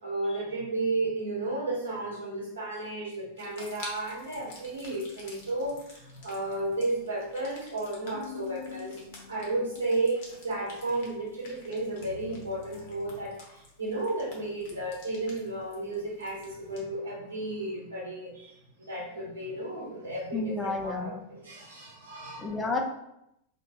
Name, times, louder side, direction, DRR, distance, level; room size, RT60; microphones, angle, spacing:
voice 1, 0.0-9.0 9.3-18.5 18.9-22.6, right 2 dB, 70° right, -3 dB, 1.2 m, -33 dB
sound 1, 3.4-16.8, left 2 dB, 50° left, 1.0 m, -50 dB
sound 2, 8.1-13.3, left 6 dB, 70° left, 0.7 m, -47 dB
voice 2, 20.3-21.2 22.4-22.8, left 3 dB, 15° left, 1 dB, 0.6 m, -31 dB
2.8 x 2.7 x 3.9 m, 0.80 s
figure-of-eight pair, 90°, 0 cm